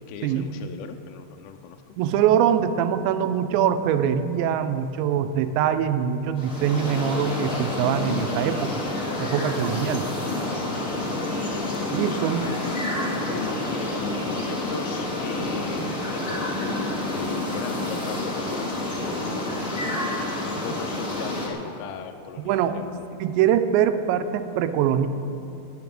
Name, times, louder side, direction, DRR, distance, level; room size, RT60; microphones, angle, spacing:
voice 1, 0.1-2.0 9.3-9.7 10.6-11.3 12.1-12.5 13.3-15.8 16.1-19.7 20.5-23.0, left 8 dB, 85° left, 5 dB, 2.6 m, -38 dB
voice 2, 2.0-8.7 9.2-10.1 11.9-12.5 22.4-22.8 23.2-25.1, right 9 dB, 80° right, 10 dB, 2.8 m, -23 dB
sound 1, 6.4-21.5, left 2 dB, 35° left, 1.3 m, -28 dB
16.5 x 6.7 x 8.7 m, 2.7 s
omnidirectional pair, 5.2 m